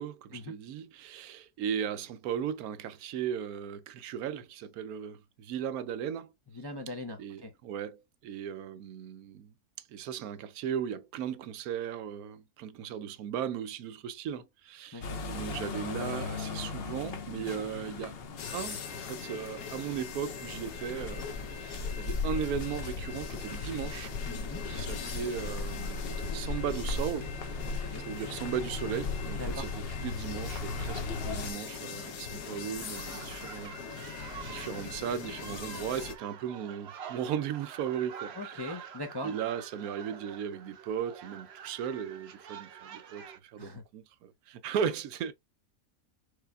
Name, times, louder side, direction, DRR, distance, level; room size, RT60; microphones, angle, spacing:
voice 1, 0.0-6.3 7.2-9.5 9.9-18.1 18.5-24.1 24.7-26.0 26.3-27.3 28.1-38.9 39.2-45.3, right 8 dB, 80° right, 1.1 m, -37 dB
voice 2, 6.6-7.5 14.9-15.2 24.3-24.6 27.6-28.1 29.4-29.7 38.3-39.3 43.6-43.8, left 2 dB, 30° left, 0.4 m, -40 dB
sound 1, 15.0-31.5, left 4 dB, 50° left, 0.8 m, -37 dB
sound 2, 18.4-36.1, left 6 dB, 75° left, 1.4 m, -41 dB
sound 3, 32.8-43.4, right 8 dB, 55° right, 0.8 m, -47 dB
4.8 x 4.5 x 2.3 m
omnidirectional pair, 1.6 m